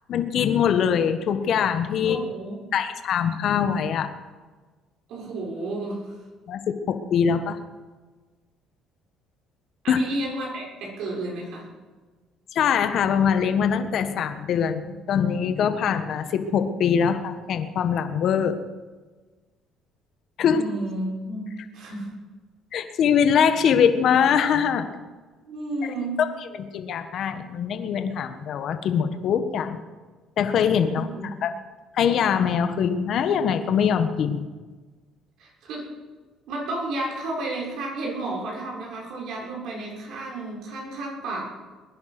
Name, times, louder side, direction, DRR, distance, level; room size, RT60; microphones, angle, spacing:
voice 1, 0.1-2.2 2.7-4.1 6.5-7.6 9.9-10.0 12.5-18.6 20.4-20.6 22.7-24.9 26.2-26.3 26.5-29.8 30.4-31.1 31.4-31.5 31.9-34.4, left 7 dB, 60° left, 8 dB, 1.4 m, -23 dB
voice 2, 2.0-2.6 5.1-6.0 9.8-11.7 20.5-22.1 25.4-26.2 30.9-31.2 35.4-35.9 36.5-41.4, right 2 dB, 70° right, -2 dB, 6.2 m, -32 dB
21.5 x 10.5 x 6.1 m, 1.3 s
cardioid pair, 110°, 0 cm